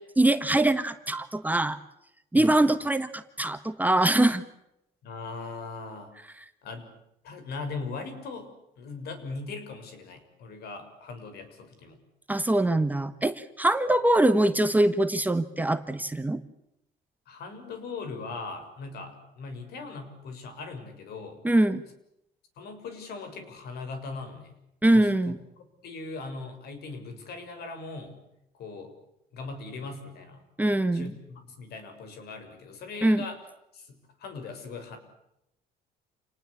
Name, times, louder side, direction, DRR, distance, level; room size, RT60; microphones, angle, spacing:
voice 1, 0.0-1.8 2.3-4.4 12.3-16.4 21.4-21.8 24.8-25.4 30.6-31.1 33.0-33.2, right 1 dB, 10° right, 9 dB, 1.4 m, -23 dB
voice 2, 5.0-6.1 6.6-6.9 7.2-8.5 8.8-12.0 17.3-21.4 22.6-24.5 24.9-25.1 25.6-28.2 28.5-28.9 29.3-30.4 30.9-33.4 33.7-35.0, left 4 dB, 70° left, 8 dB, 6.6 m, -39 dB
29.0 x 19.5 x 8.6 m, 0.82 s
cardioid pair, 110°, 17 cm